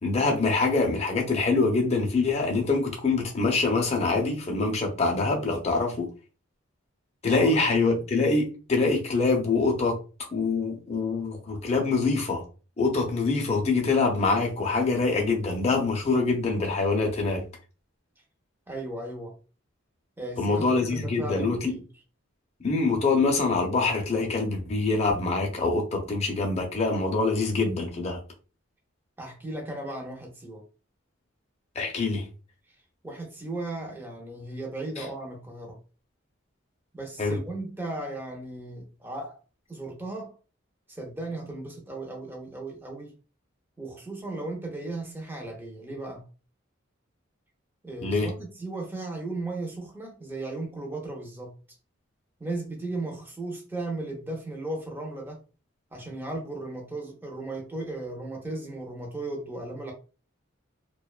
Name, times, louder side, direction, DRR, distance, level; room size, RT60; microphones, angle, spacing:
voice 1, 0.0-6.1 7.2-10.0 10.3-12.4 12.8-17.4 20.4-21.7 22.6-28.2 31.8-32.2 35.0-35.1 37.2-37.4 48.0-48.3, left 3 dB, 30° left, 0.5 m, -25 dB
voice 2, 7.3-7.6 18.7-19.4 20.2-21.9 29.2-30.6 33.0-35.8 36.9-39.4 39.7-40.4 40.9-43.1 43.8-46.2 47.8-51.5 52.4-55.4 55.9-59.9, right 2 dB, 10° right, 0.5 m, -36 dB
2.5 x 2.2 x 2.3 m
head